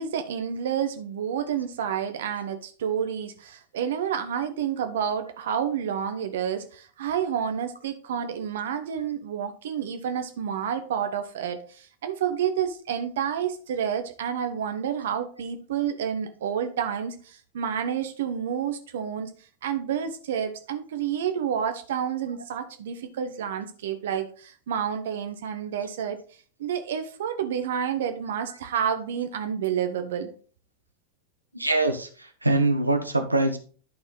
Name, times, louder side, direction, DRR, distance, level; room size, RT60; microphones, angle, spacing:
voice 1, 0.0-19.3 19.6-26.2 26.6-30.3, right 8 dB, 60° right, 7 dB, 0.9 m, -29 dB
voice 2, 31.5-33.6, right 2 dB, 85° right, 6 dB, 0.9 m, -24 dB
11.0 x 4.3 x 3.9 m, 0.41 s
figure-of-eight pair, 90°, 0 cm